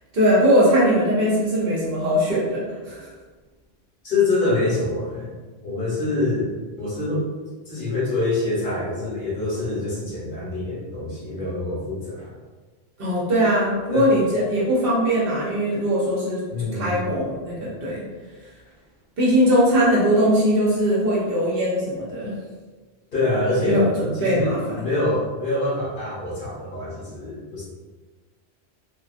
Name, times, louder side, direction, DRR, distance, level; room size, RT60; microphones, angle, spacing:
voice 1, 0.1-3.1 13.0-16.4 16.7-18.0 19.2-22.3 23.7-24.6, equal, 60° right, -6 dB, 0.9 m, -20 dB
voice 2, 4.0-5.3 5.6-7.2 7.7-12.3 13.9-14.1 15.7-15.8 16.5-17.0 23.1-24.5 24.8-27.6, left 2 dB, 50° left, -7 dB, 1.0 m, -25 dB
2.4 x 2.4 x 2.4 m, 1.3 s
omnidirectional pair, 1.1 m